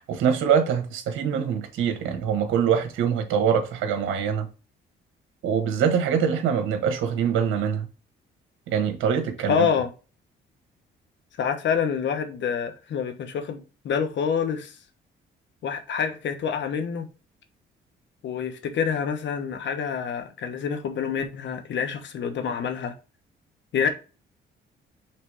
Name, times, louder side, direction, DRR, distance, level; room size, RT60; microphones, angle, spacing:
voice 1, 0.1-4.4 5.4-7.8 8.7-9.7, right 7 dB, 80° right, 1.3 m, -24 dB
voice 2, 9.5-9.9 11.4-14.8 15.6-17.1 18.2-22.9 23.7-23.9, left 7 dB, 65° left, 1.2 m, -27 dB
6.0 x 3.3 x 4.8 m
cardioid pair, 90°, 20 cm